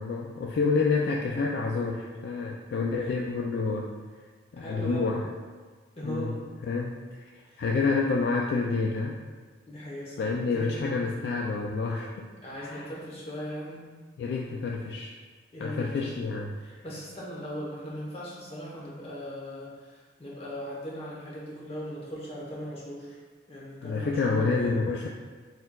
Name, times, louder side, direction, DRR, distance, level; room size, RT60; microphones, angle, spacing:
voice 1, 0.0-3.9 4.5-5.2 6.0-6.4 6.7-6.9 7.6-9.2 10.2-12.3 12.5-12.9 14.2-15.1 15.6-16.5 23.8-25.1, left 4 dB, 60° left, -1 dB, 0.3 m, -28 dB
voice 2, 4.6-5.0 6.0-6.4 7.5-7.6 9.7-11.2 12.4-13.8 15.5-16.3 16.6-23.2 23.5-24.8, equal, 35° left, -5 dB, 1.0 m, -39 dB
4.3 x 3.9 x 2.3 m, 1.5 s
head